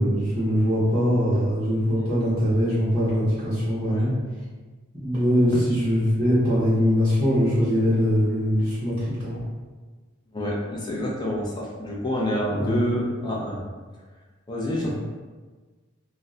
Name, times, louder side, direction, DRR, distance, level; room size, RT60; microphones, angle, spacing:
voice 1, 0.0-4.1 5.0-8.9 9.2-9.4 12.5-12.8, equal, 25° right, -12 dB, 0.7 m, -22 dB
voice 2, 10.3-13.6 14.5-14.9, left 1 dB, 20° left, -3 dB, 0.4 m, -28 dB
2.2 x 2.0 x 3.7 m, 1.4 s
head